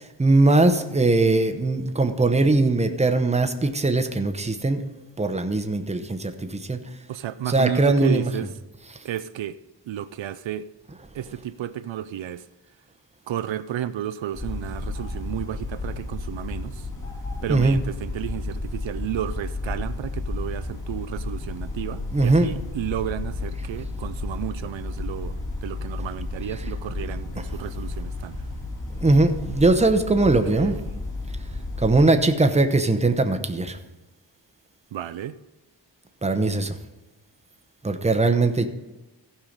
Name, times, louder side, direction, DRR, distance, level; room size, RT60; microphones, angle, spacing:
voice 1, 0.0-4.9 5.2-6.8 7.5-8.3 17.5-17.8 22.1-22.5 29.0-30.8 31.8-33.8 36.2-36.7 37.8-38.7, right 2 dB, 15° right, 0.8 m, -20 dB
voice 2, 7.1-8.5 9.0-9.6 9.9-10.7 11.1-12.5 13.3-16.9 17.4-28.4 30.2-30.9 34.9-35.3, right 11 dB, 85° right, 0.5 m, -32 dB
sound 1, 14.3-32.0, left 2 dB, 40° left, 2.9 m, -32 dB
15.0 x 5.7 x 5.1 m
wide cardioid pair, 115°, 44 cm